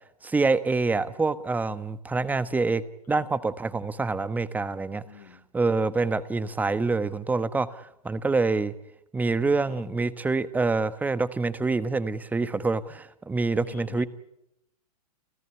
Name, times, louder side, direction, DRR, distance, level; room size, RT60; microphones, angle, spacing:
voice 1, 0.2-5.0 5.5-8.7 9.1-14.1, right 3 dB, 10° right, 14 dB, 1.1 m, -26 dB
voice 2, 5.1-5.5 9.6-9.9 13.6-14.1, left 9 dB, 75° left, 9 dB, 2.3 m, -46 dB
29.5 x 14.0 x 9.9 m, 0.83 s
hypercardioid pair, 130°, 20 cm